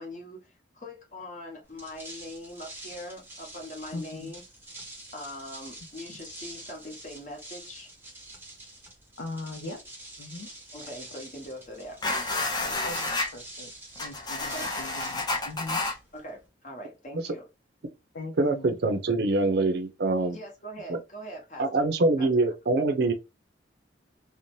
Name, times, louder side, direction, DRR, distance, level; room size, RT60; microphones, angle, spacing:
voice 1, 0.0-4.4 5.1-7.9 10.7-12.0 14.5-14.7 16.1-17.5 20.3-21.8 22.2-22.3, left 1 dB, 40° left, 1.0 m, -42 dB
sound 1, 1.6-16.5, right 1 dB, 10° right, 0.7 m, -46 dB
voice 2, 3.9-4.3 6.1-6.2 9.2-9.8 10.2-10.5 12.8-13.7 14.0-15.8 18.1-18.7, left 2 dB, 75° left, 0.4 m, -40 dB
sound 2, 12.0-13.3 14.0-15.9, left 2 dB, 20° left, 0.5 m, -30 dB
voice 3, 18.4-20.4 20.9-21.0 21.6-23.1, right 2 dB, 60° right, 0.5 m, -24 dB
2.6 x 2.0 x 3.0 m
head